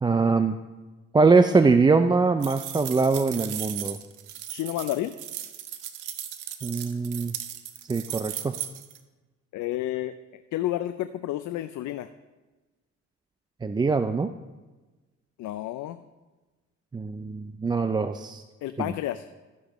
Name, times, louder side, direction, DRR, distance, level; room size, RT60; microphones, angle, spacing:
voice 1, 0.0-0.6 1.1-4.0 6.6-7.3 7.9-8.6 13.6-14.3 16.9-18.4, right 4 dB, 15° right, 9 dB, 0.3 m, -22 dB
sound 1, 2.4-9.0, right 11 dB, 85° right, 0.8 m, -37 dB
voice 2, 4.5-5.1 9.5-12.1 15.4-16.0 18.6-19.2, left 14 dB, 75° left, 10 dB, 0.5 m, -31 dB
12.5 x 9.7 x 3.0 m, 1.2 s
cardioid pair, 90°, 30 cm